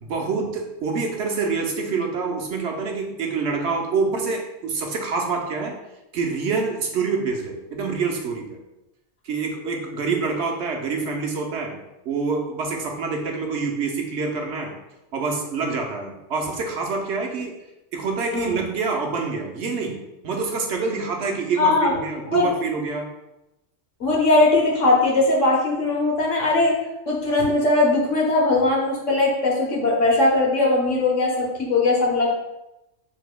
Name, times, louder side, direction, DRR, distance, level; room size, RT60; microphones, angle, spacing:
voice 1, 0.0-5.7 6.1-8.6 9.2-11.8 12.0-14.7 15.1-17.6 17.9-23.1, right 4 dB, 70° right, 1 dB, 1.0 m, -26 dB
voice 2, 18.3-18.6 21.6-22.0 22.3-22.5 24.0-26.7 27.1-32.3, left 2 dB, 85° left, -2 dB, 1.5 m, -20 dB
6.8 x 3.5 x 2.2 m, 0.94 s
omnidirectional pair, 1.2 m